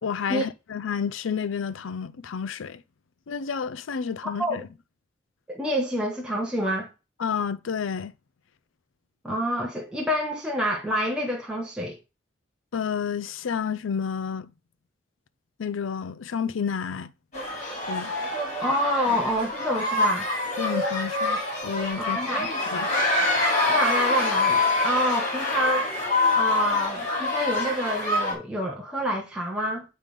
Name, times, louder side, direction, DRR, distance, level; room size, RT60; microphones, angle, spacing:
voice 1, 0.0-2.8 3.3-4.7 7.2-8.1 12.7-14.5 15.6-17.1 17.9-18.1 19.1-19.2 20.6-22.2 22.7-22.9, left 6 dB, 85° left, 0.5 m, -30 dB
voice 2, 5.5-6.9 9.2-12.0 18.6-20.3 22.0-22.5 23.7-25.9 26.3-29.8, equal, 5° right, 0.9 m, -27 dB
sound 1, 17.3-28.3, left 2 dB, 35° left, 2.9 m, -26 dB
9.0 x 3.3 x 5.2 m
head